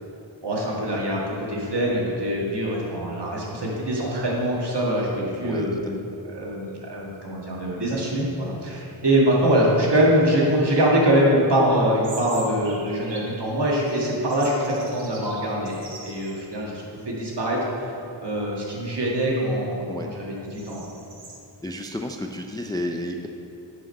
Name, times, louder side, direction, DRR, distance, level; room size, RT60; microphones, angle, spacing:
voice 1, 0.4-5.9 6.3-17.6 18.2-20.9, right 1 dB, 60° right, -4 dB, 1.8 m, -23 dB
voice 2, 5.4-5.9 19.9-20.1 21.6-23.3, left 1 dB, 10° left, 4 dB, 0.3 m, -31 dB
sound 1, 11.7-13.4 13.8-16.5 16.8-16.9 17.7-18.1 18.6-21.4, right 3 dB, 75° right, 1.1 m, -43 dB
8.8 x 4.9 x 5.4 m, 2.9 s
wide cardioid pair, 85°, 47 cm